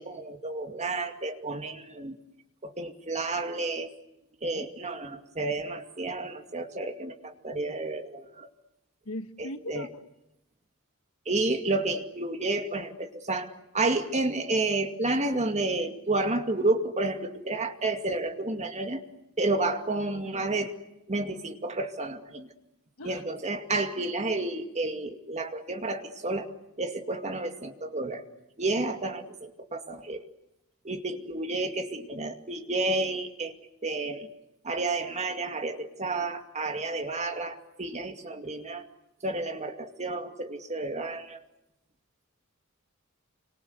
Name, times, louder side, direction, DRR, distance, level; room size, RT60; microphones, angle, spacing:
voice 1, 0.0-2.1 2.6-3.9 4.4-8.5 9.4-9.9 11.3-19.0 19.4-20.7 21.1-22.5 23.0-26.5 26.8-28.2 28.6-30.2 30.8-33.5 33.8-34.3 34.6-38.9 39.2-41.4, right 2 dB, 30° right, 6 dB, 2.3 m, -31 dB
voice 2, 9.0-10.0 23.0-23.2, left 1 dB, 70° left, 9 dB, 1.6 m, -39 dB
28.0 x 26.0 x 8.1 m, 0.87 s
head